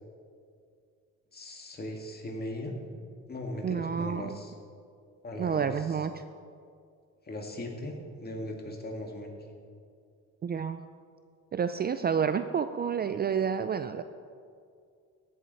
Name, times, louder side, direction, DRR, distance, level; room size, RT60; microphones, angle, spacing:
voice 1, 1.3-2.7 3.3-4.5 5.2-6.0 7.2-9.4, left 1 dB, 30° left, 1 dB, 2.0 m, -38 dB
voice 2, 3.6-4.4 5.4-6.2 10.4-10.8 11.5-14.0, right 7 dB, 35° right, 10 dB, 0.4 m, -29 dB
15.5 x 7.7 x 4.1 m, 2.3 s
cardioid pair, 90°, 30 cm